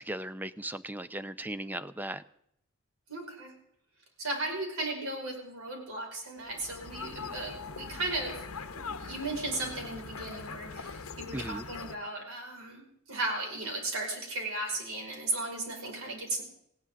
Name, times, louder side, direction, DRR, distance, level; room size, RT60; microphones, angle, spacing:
voice 1, 0.0-2.2 11.3-11.6, right 1 dB, 10° right, 13 dB, 0.5 m, -37 dB
voice 2, 3.1-3.5 4.2-8.4 8.7-12.8 13.1-16.4, right 2 dB, 85° right, 1 dB, 5.2 m, -36 dB
sound 1, 6.4-12.0, left 4 dB, 85° left, 1.0 m, -42 dB
19.0 x 16.5 x 3.7 m, 0.72 s
head